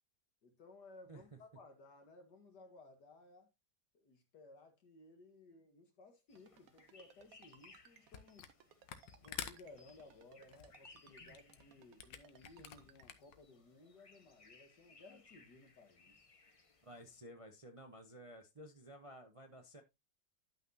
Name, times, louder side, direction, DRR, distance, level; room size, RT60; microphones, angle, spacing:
voice 1, 0.4-3.5 3.9-8.5 9.2-16.3, left 2 dB, 70° left, 2.3 m, -59 dB
sound 1, 6.3-17.2, left 3 dB, 35° left, 0.5 m, -65 dB
Ringtone, 6.4-13.2, right 9 dB, 60° right, 1.1 m, -63 dB
Camera, 8.1-8.6 8.8-13.4, left 9 dB, 85° left, 1.6 m, -49 dB
voice 2, 16.8-19.8, equal, 30° right, 0.6 m, -54 dB
11.5 x 5.8 x 2.8 m
omnidirectional pair, 1.9 m